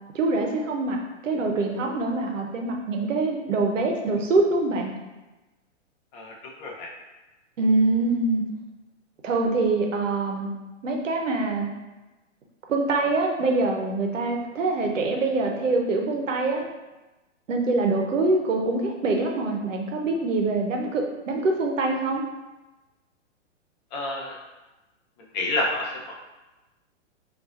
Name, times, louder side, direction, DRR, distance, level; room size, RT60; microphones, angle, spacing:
voice 1, 0.1-4.9 7.6-8.4 9.2-10.5 10.8-11.7 12.7-16.6 17.5-22.2, right 3 dB, 85° right, 2 dB, 0.8 m, -24 dB
voice 2, 6.1-6.9 23.9-24.4 25.3-26.1, left 2 dB, 35° left, -1 dB, 0.8 m, -29 dB
4.7 x 2.5 x 2.5 m, 1.1 s
hypercardioid pair, 125°, 37 cm